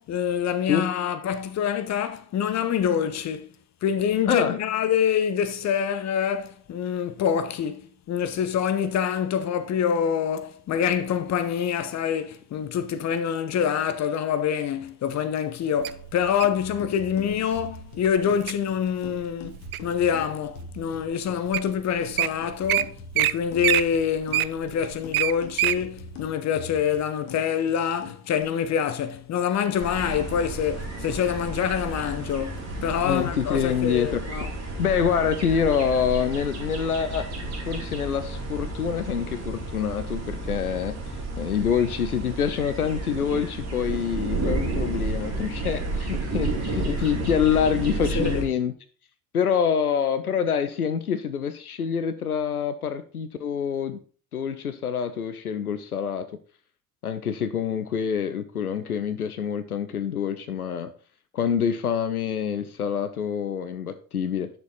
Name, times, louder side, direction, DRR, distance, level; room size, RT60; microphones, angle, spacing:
voice 1, 0.0-3.5 3.8-34.5 46.9-47.1 48.1-48.4, left 8 dB, 40° left, 1.0 m, -26 dB
Wild animals, 15.8-16.6 17.3-17.6 18.1-18.5 19.0-20.0 20.6-20.7 21.3-21.4 21.5-21.7 22.0-22.3 22.7-22.8 23.1-23.3 23.6-25.8 26.2-26.3, right 16 dB, 75° right, 0.5 m, -24 dB
sound 1, 16.4-28.4, left 4 dB, 65° left, 1.8 m, -44 dB
sound 2, 29.8-48.4, right 2 dB, 35° right, 3.4 m, -31 dB
voice 2, 32.8-34.3 34.8-48.7 49.3-54.0 54.3-56.3 57.0-60.9 61.3-64.5, left 7 dB, 85° left, 0.6 m, -26 dB
10.5 x 6.6 x 4.0 m
figure-of-eight pair, 55°, 43 cm